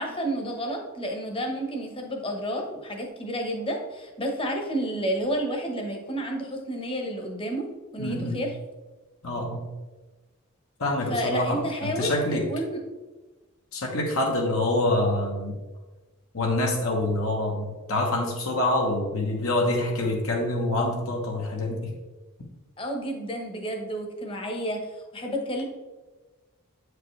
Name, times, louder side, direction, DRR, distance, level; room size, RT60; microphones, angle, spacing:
voice 1, 0.0-7.7 7.9-8.5 11.1-12.2 12.5-12.8 22.8-24.9 25.1-25.6, equal, 25° left, 2 dB, 1.0 m, -30 dB
voice 2, 8.0-8.5 9.2-9.7 10.8-12.5 13.7-15.6 16.3-21.9, left 1 dB, 70° left, 0 dB, 1.0 m, -26 dB
8.0 x 4.9 x 3.2 m, 1.2 s
head